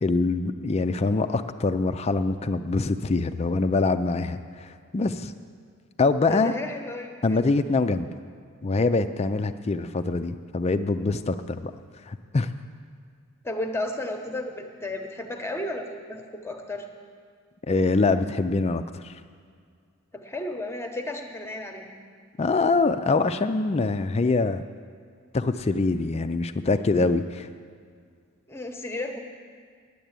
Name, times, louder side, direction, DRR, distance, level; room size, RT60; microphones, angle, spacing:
voice 1, 0.0-5.3 6.0-6.5 7.2-8.1 8.6-11.7 12.1-12.5 17.7-19.2 22.4-24.6 25.3-27.5, left 3 dB, 30° left, 10 dB, 0.4 m, -24 dB
voice 2, 6.3-7.5 13.4-16.9 20.1-22.0 28.5-29.2, left 1 dB, 10° left, 4 dB, 0.9 m, -33 dB
10.0 x 8.1 x 8.9 m, 2.1 s
head